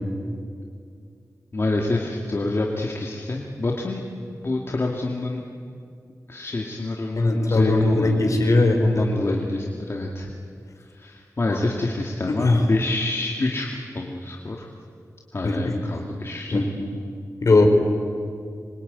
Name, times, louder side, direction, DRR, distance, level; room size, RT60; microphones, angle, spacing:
voice 1, 1.5-4.0 4.4-5.4 6.3-8.3 8.8-10.3 11.0-14.7 15.3-16.7, left 2 dB, 45° left, 0 dB, 2.2 m, -27 dB
voice 2, 7.2-9.4 11.5-11.6 12.4-12.6 15.4-15.8 16.5-16.7 17.4-17.7, left 2 dB, 60° left, 4 dB, 4.3 m, -19 dB
26.0 x 23.0 x 9.5 m, 2.3 s
wide cardioid pair, 110°, 6 cm